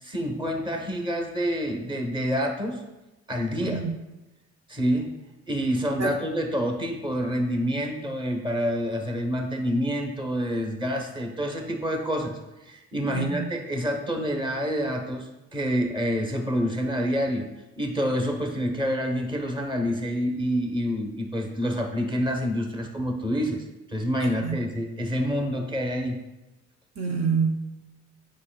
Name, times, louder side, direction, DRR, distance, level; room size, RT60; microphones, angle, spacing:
voice 1, 0.0-2.8 3.3-3.8 4.7-5.1 5.5-17.5 17.8-26.2, equal, 15° right, 3 dB, 1.1 m, -27 dB
voice 2, 3.6-3.9 6.0-6.1 13.0-13.4 24.4-24.6 27.0-27.8, right 5 dB, 60° right, 2 dB, 0.8 m, -27 dB
8.4 x 5.1 x 2.3 m, 1.0 s
cardioid pair, 90°, 30 cm